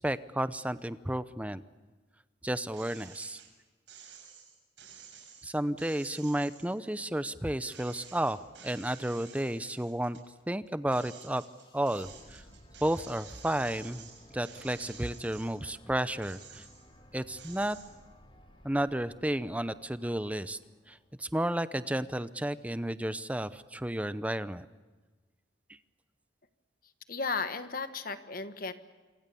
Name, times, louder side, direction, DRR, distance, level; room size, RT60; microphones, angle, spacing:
voice 1, 0.0-1.6 2.4-3.4 5.4-8.4 8.6-10.2 10.5-11.4 11.7-12.4 12.8-14.1 14.3-16.6 17.1-17.8 18.6-20.6 20.9-24.7, right 1 dB, 10° right, 13 dB, 0.7 m, -32 dB
sound 1, 2.7-3.5 3.9-7.3 7.7-10.3 10.7-15.7 16.1-17.0 17.4-17.9, right 7 dB, 90° right, 6.9 m, -52 dB
sound 2, 11.1-21.3, equal, 30° left, 3.8 m, -57 dB
voice 2, 27.1-28.7, left 4 dB, 50° left, 10 dB, 1.4 m, -34 dB
27.0 x 25.0 x 7.0 m, 1.3 s
head